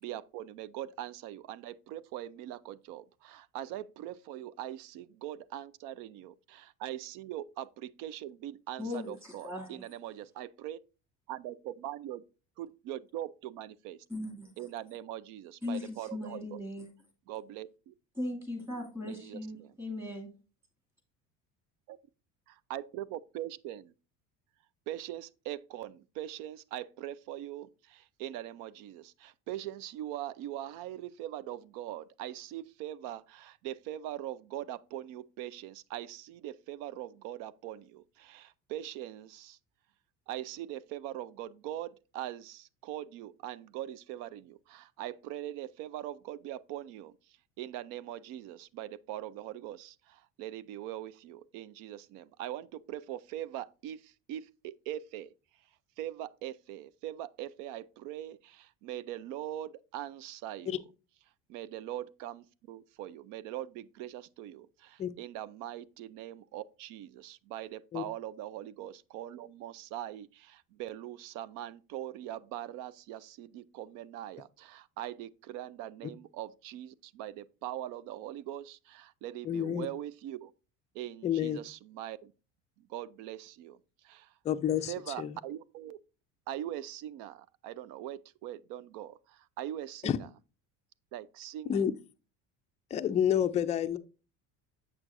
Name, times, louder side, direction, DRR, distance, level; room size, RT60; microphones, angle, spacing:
voice 1, 0.0-6.3 6.8-10.8 11.3-12.2 12.6-14.0 14.6-16.6 17.3-17.7 19.1-19.7 22.7-23.9 24.9-39.6 40.3-47.2 47.6-55.3 56.0-60.8 61.5-80.5 80.9-82.3 82.8-84.3 84.9-86.0 86.5-90.3 91.1-91.9, right 12 dB, 70° right, 0.5 m, -42 dB
voice 2, 8.8-9.8 14.1-14.5 15.6-16.9 18.2-20.3, left 2 dB, 5° right, 2.3 m, -38 dB
voice 3, 79.4-79.9 81.2-81.6 84.4-85.3 90.0-90.2 91.7-91.9 92.9-94.0, left 9 dB, 20° left, 0.3 m, -29 dB
7.7 x 6.1 x 2.6 m
cardioid pair, 135°, 33 cm